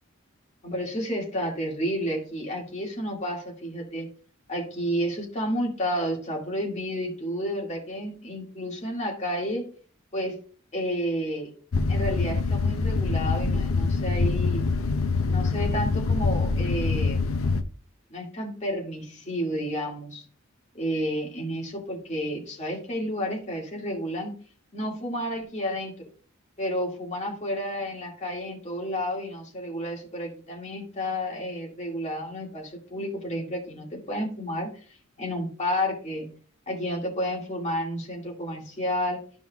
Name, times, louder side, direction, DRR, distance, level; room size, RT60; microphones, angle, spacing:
voice 1, 0.6-4.1 4.5-9.7 10.1-10.4 10.7-11.5 11.9-14.7 15.3-17.3 18.1-20.3 20.7-24.3 24.7-26.1 26.6-36.3 36.7-39.2, equal, 35° left, -1 dB, 2.1 m, -31 dB
sound 1, 11.7-17.6, left 4 dB, 70° left, 0.6 m, -25 dB
12.0 x 5.2 x 2.3 m, 0.43 s
head